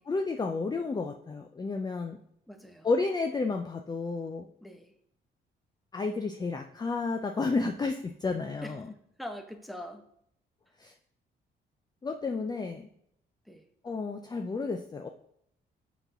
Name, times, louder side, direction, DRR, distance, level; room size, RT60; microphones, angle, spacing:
voice 1, 0.1-2.2 2.8-4.5 5.9-8.7 10.8-10.9 12.0-12.9 13.8-15.1, left 3 dB, 20° left, 5 dB, 0.5 m, -31 dB
voice 2, 2.5-2.9 4.6-4.9 8.6-8.8 9.2-10.0 13.4-13.7, equal, ahead, 5 dB, 0.9 m, -42 dB
5.7 x 4.2 x 5.6 m, 0.74 s
cardioid pair, 90°, 20 cm